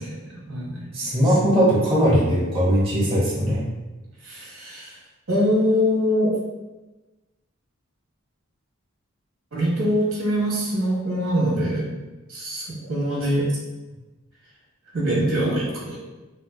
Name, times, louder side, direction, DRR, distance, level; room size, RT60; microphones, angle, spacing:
voice 1, 0.0-0.9 4.2-5.0 5.3-6.3 9.5-11.9 12.3-13.5 14.9-16.0, equal, 80° right, -6 dB, 1.2 m, -23 dB
voice 2, 0.9-3.7, equal, 25° right, -7 dB, 0.9 m, -20 dB
4.3 x 2.3 x 2.2 m, 1.1 s
head